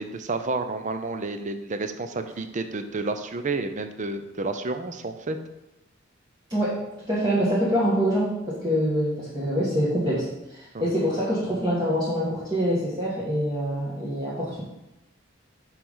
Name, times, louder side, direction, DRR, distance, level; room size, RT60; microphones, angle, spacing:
voice 1, 0.0-5.4 10.7-10.9, right 3 dB, 40° right, 8 dB, 0.6 m, -30 dB
voice 2, 6.5-6.8 7.1-14.6, equal, 20° right, -9 dB, 1.5 m, -25 dB
5.9 x 4.9 x 5.5 m, 0.93 s
head